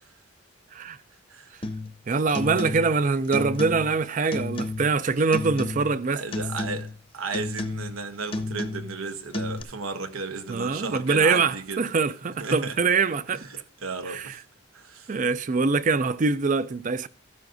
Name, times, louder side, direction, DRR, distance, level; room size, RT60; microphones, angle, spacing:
sound 1, 1.6-2.0 2.3-3.0 3.3-4.0 4.3-5.0 5.3-6.0 6.3-7.0 7.3-8.0 8.3-9.0 9.3-9.6, left 2 dB, 25° left, 0.7 m, -32 dB
voice 1, 2.1-6.2 10.5-13.5 14.1-14.3 15.1-17.1, right 4 dB, 35° right, 0.4 m, -24 dB
voice 2, 6.1-11.9 12.4-12.8 13.3-14.4 14.7-15.2, right 4 dB, 90° right, 1.1 m, -34 dB
14.0 x 10.5 x 2.6 m
head